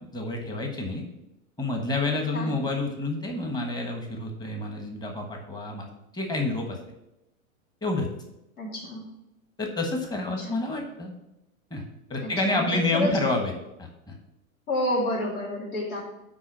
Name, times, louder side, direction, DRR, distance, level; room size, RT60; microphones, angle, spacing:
voice 1, 0.0-1.0 1.6-5.9 6.1-6.8 7.8-8.1 9.6-11.1 11.7-11.8 12.1-13.5 13.8-14.1, left 2 dB, 10° left, 2 dB, 1.2 m, -28 dB
voice 2, 8.6-9.0 10.4-10.6 12.2-13.1 14.7-16.0, left 1 dB, 85° left, -3 dB, 3.2 m, -29 dB
6.1 x 4.9 x 6.1 m, 0.91 s
hypercardioid pair, 125°, 43 cm